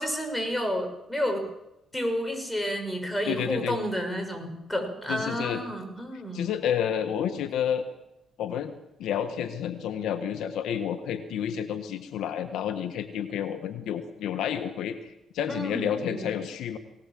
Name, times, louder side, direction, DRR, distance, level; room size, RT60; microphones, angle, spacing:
voice 1, 0.0-1.4 1.9-6.5 15.5-16.2, equal, 10° left, 5 dB, 6.5 m, -30 dB
voice 2, 3.3-3.8 5.1-5.6 6.3-7.8 8.4-8.7 9.0-16.8, left 9 dB, 80° left, 9 dB, 1.5 m, -30 dB
19.5 x 19.5 x 7.7 m, 0.89 s
cardioid pair, 90°, 0 cm